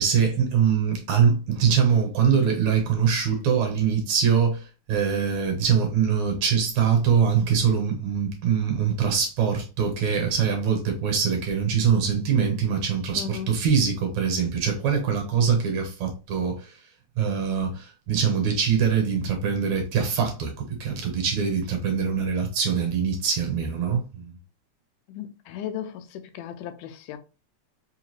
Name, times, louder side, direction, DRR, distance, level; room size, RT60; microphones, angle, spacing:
voice 1, 0.0-16.7 17.2-24.4, right 7 dB, 70° right, 2.2 m, -23 dB
voice 2, 13.1-13.5 25.1-27.2, left 9 dB, 90° left, 2.1 m, -36 dB
5.1 x 2.4 x 3.0 m
omnidirectional pair, 3.5 m